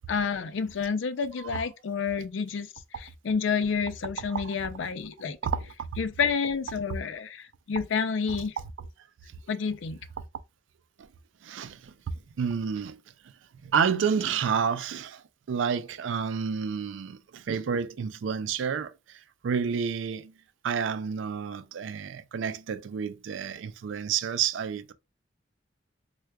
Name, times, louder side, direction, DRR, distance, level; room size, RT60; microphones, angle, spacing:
voice 1, 0.1-2.7 3.2-5.4 6.0-8.5 9.5-10.0, left 5 dB, 85° left, 0.4 m, -29 dB
voice 2, 4.2-4.5 5.4-5.7 8.3-8.4 11.4-13.0 13.6-20.3 20.6-24.9, right 6 dB, 85° right, 0.4 m, -30 dB
4.5 x 2.3 x 2.2 m
head